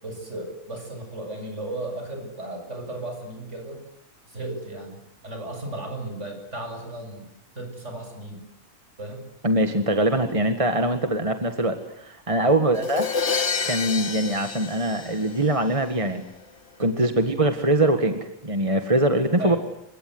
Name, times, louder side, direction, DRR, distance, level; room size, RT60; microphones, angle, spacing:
voice 1, 0.0-3.8 4.3-5.0 5.2-8.4 9.0-9.2 12.3-12.5 16.8-17.0 19.4-19.6, right 1 dB, 55° right, 4 dB, 8.1 m, -35 dB
voice 2, 9.4-13.1 13.6-16.2 16.8-19.6, right 1 dB, 25° right, 6 dB, 1.9 m, -23 dB
Crash cymbal, 12.8-15.7, left 5 dB, 55° left, 1.7 m, -28 dB
29.0 x 25.5 x 8.0 m, 0.75 s
omnidirectional pair, 1.4 m